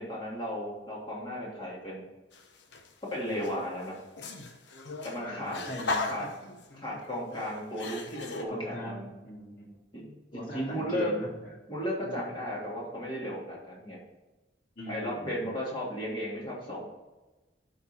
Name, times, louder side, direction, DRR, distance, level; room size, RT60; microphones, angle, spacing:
voice 1, 0.0-2.0 3.0-4.0 5.0-5.6 6.1-6.3 6.8-9.1 9.9-10.2 10.5-11.3 11.7-14.0 14.9-16.9, equal, 25° left, -5 dB, 2.9 m, -35 dB
sound 1, 2.3-2.9 3.3-8.4, left 3 dB, 70° left, 1.0 m, -37 dB
voice 2, 5.2-6.1 8.3-9.7 10.3-11.5 12.0-12.4 14.8-15.5, equal, 45° left, -2 dB, 2.4 m, -41 dB
12.5 x 4.2 x 4.4 m, 1.1 s
head